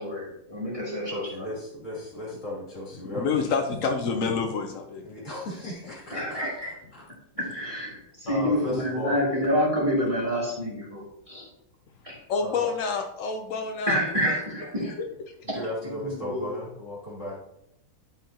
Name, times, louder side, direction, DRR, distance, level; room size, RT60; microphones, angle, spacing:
voice 1, 0.0-1.5 6.1-6.7 7.3-11.5 12.0-12.2 13.8-14.9 15.5-16.4, equal, 15° right, -5 dB, 2.5 m, -28 dB
voice 2, 1.1-3.3 5.0-6.4 6.9-7.0 8.3-9.2 12.4-12.7 15.5-17.4, left 1 dB, 35° left, -5 dB, 2.8 m, -35 dB
voice 3, 3.1-5.1 12.3-14.0, left 5 dB, 85° left, 5 dB, 0.7 m, -27 dB
11.0 x 5.6 x 2.8 m, 0.79 s
omnidirectional pair, 2.3 m